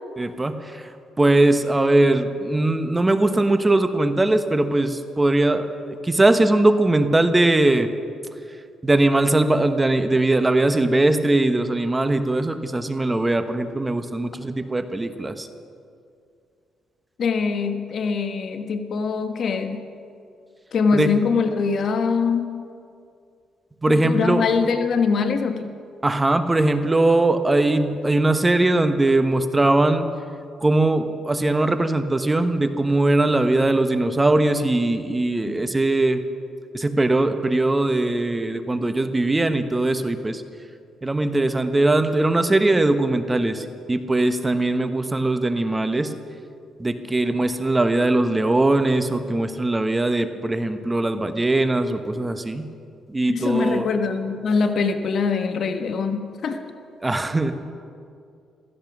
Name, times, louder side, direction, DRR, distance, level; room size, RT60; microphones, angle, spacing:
voice 1, 0.2-0.9 1.2-7.9 8.8-15.5 20.9-21.1 23.8-24.4 26.0-30.1 30.6-36.2 36.7-40.4 41.0-46.1 46.8-52.7 53.1-53.9 57.0-57.5, right 2 dB, 15° right, 9 dB, 1.0 m, -20 dB
voice 2, 17.2-19.8 20.7-22.5 23.9-25.7 53.3-56.6, left 5 dB, 55° left, 7 dB, 1.2 m, -23 dB
16.0 x 14.5 x 6.1 m, 2.4 s
cardioid pair, 90°, 0 cm